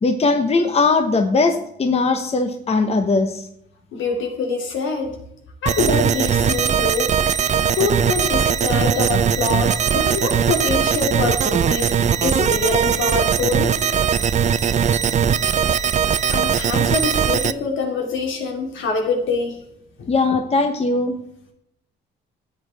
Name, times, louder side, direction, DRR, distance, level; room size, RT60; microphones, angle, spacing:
voice 1, 0.0-3.5 20.1-21.1, left 3 dB, 30° left, 7 dB, 0.8 m, -19 dB
voice 2, 3.9-5.1 5.6-7.1 7.8-13.7 16.3-19.6 20.0-20.1, left 4 dB, 75° left, 2 dB, 2.4 m, -24 dB
sound 1, 5.7-17.5, right 7 dB, 35° right, 0.5 m, -19 dB
12.5 x 8.2 x 3.4 m, 0.76 s
cardioid pair, 90°, 20 cm